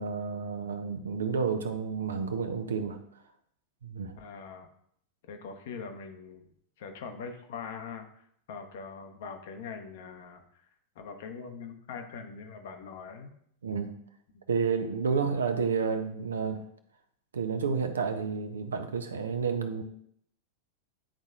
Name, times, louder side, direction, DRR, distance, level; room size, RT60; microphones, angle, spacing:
voice 1, 0.0-3.0 3.8-4.1 13.6-13.9 14.5-16.6 17.3-19.8, right 5 dB, 70° right, 7 dB, 0.7 m, -30 dB
voice 2, 4.2-4.7 5.3-6.5 6.8-8.1 8.5-10.4 11.0-13.3 14.3-14.4, left 5 dB, 55° left, 5 dB, 0.9 m, -42 dB
9.9 x 4.1 x 2.5 m, 0.68 s
figure-of-eight pair, 90°, 0 cm